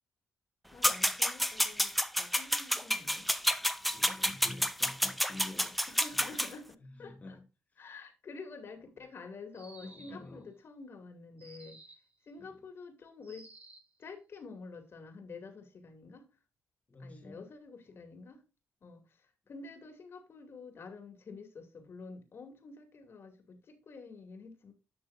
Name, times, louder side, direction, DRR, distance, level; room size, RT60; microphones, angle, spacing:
voice 1, 0.7-3.3 5.9-7.4 7.8-11.8 12.2-13.5 14.0-16.3 17.0-18.4 18.8-24.7, left 4 dB, 55° left, 2.5 m, -49 dB
sound 1, 0.8-6.5, equal, ahead, 0.6 m, -29 dB
voice 2, 3.4-5.8 7.0-7.4 9.8-10.5 12.4-12.5 16.9-17.4 17.9-18.0, left 2 dB, 30° left, 1.6 m, -48 dB
sound 2, 9.5-10.3 11.4-12.1 13.2-14.0, right 3 dB, 30° right, 1.9 m, -55 dB
11.0 x 6.1 x 2.6 m
cardioid pair, 100°, 5 cm